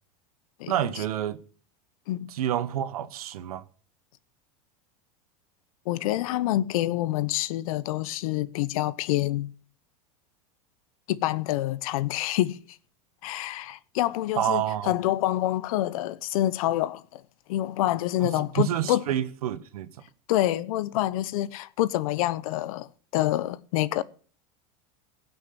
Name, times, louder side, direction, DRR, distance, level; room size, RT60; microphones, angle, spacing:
voice 1, 0.7-1.4 2.3-3.6 14.3-14.9 18.2-19.9, right 11 dB, 90° right, 1.2 m, -28 dB
voice 2, 5.9-9.5 11.1-12.6 13.2-17.2 17.5-19.0 20.3-22.9 23.1-24.0, left 15 dB, 75° left, 0.9 m, -27 dB
18.0 x 6.3 x 6.9 m
supercardioid pair, 125°, 18 cm